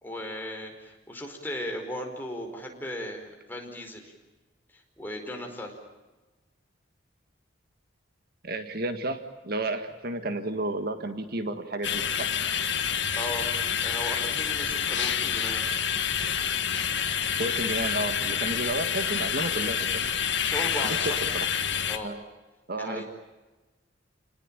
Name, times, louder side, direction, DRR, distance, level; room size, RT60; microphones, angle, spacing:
voice 1, 0.0-4.1 4.7-5.7 13.1-13.5 13.8-15.6 20.4-21.2 21.9-22.1 22.8-23.0, left 1 dB, 10° left, 2 dB, 4.9 m, -36 dB
voice 2, 8.4-12.3 17.4-20.1 20.8-21.5 22.0-22.2 22.7-23.0, right 2 dB, 55° right, 8 dB, 1.8 m, -32 dB
sound 1, 11.8-22.0, left 8 dB, 65° left, 1.9 m, -28 dB
29.5 x 20.0 x 8.9 m, 1.2 s
head